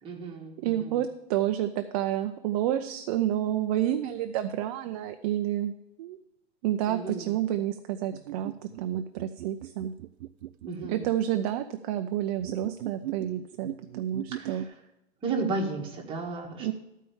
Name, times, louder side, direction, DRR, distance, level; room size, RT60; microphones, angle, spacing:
voice 1, 0.0-1.0 6.9-7.4 10.7-11.1 14.3-14.8 15.2-16.7, right 3 dB, 15° right, -1 dB, 1.7 m, -34 dB
voice 2, 0.6-5.7 6.0-6.2 6.6-8.5 8.8-9.9 10.9-14.7 16.6-16.7, right 12 dB, 35° right, 7 dB, 0.5 m, -29 dB
sound 1, 8.1-11.1 12.4-14.6, right 14 dB, 90° right, 0.5 m, -39 dB
13.5 x 4.6 x 7.1 m, 0.91 s
supercardioid pair, 155°, 31 cm